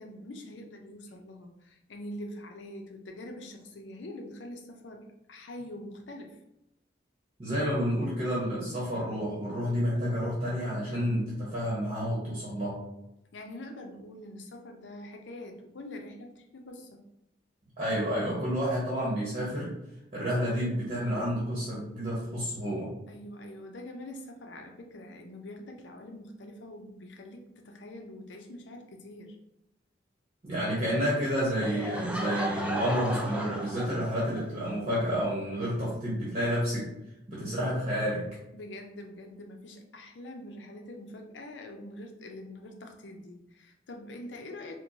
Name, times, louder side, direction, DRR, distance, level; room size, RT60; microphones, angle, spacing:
voice 1, 0.0-6.4 13.3-17.0 23.1-29.4 38.5-44.8, left 1 dB, 90° left, 3 dB, 0.6 m, -44 dB
voice 2, 7.4-12.8 17.8-19.7 20.1-22.9 30.4-36.9 37.3-38.2, equal, 35° right, -7 dB, 1.0 m, -30 dB
Laughter / Crowd, 31.6-34.5, right 1 dB, 5° right, 0.3 m, -34 dB
4.4 x 2.2 x 2.6 m, 0.86 s
head